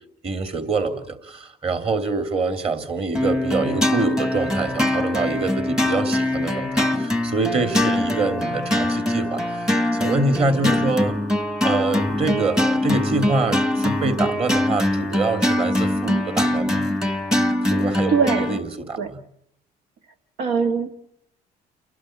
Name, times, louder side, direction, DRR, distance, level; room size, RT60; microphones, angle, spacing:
voice 1, 0.2-9.7 9.9-11.1 11.6-16.9 17.6-19.2, right 3 dB, 35° right, 8 dB, 3.0 m, -25 dB
sound 1, 3.1-18.6, left 1 dB, 5° right, 1.1 m, -23 dB
voice 2, 18.1-18.4 19.0-19.1 20.4-20.9, right 6 dB, 75° right, 5 dB, 1.6 m, -21 dB
29.5 x 11.5 x 9.1 m, 0.73 s
cardioid pair, 110°, 17 cm